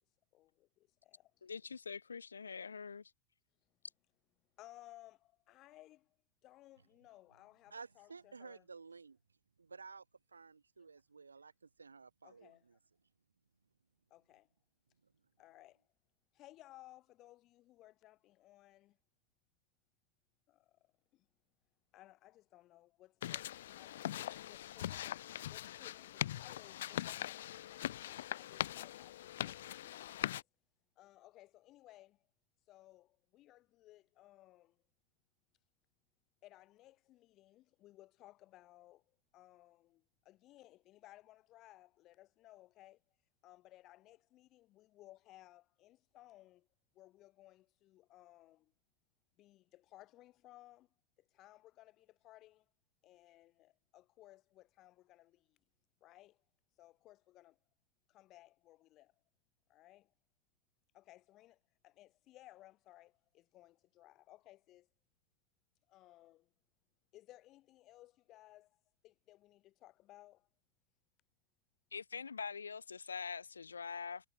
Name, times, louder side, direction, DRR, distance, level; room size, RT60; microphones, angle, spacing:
voice 1, 0.3-0.7 1.0-1.3 4.6-6.0 6.4-8.7 12.2-12.6 14.1-14.5 15.4-15.8 16.4-18.9 20.5-20.6 21.9-25.2 25.5-27.4 27.7-30.4 31.0-32.2 32.7-34.7 36.4-39.0 39.3-43.0 43.4-46.6 47.0-48.7 49.4-50.9 51.3-52.6 53.0-55.4 56.0-56.4 56.8-57.5 58.1-59.1 59.7-60.1 60.9-61.6 61.8-64.9 65.9-66.4 67.1-68.7 69.0-70.4, left 16 dB, 35° left, 5.5 m, -60 dB
voice 2, 1.4-3.1 71.9-74.3, left 5 dB, 75° left, 0.8 m, -44 dB
voice 3, 7.7-9.2 9.6-10.0 10.3-11.5 11.8-12.5, right 4 dB, 75° right, 1.2 m, -53 dB
sound 1, 23.2-30.4, left 13 dB, 60° left, 0.3 m, -41 dB
figure-of-eight pair, 90°, 0 cm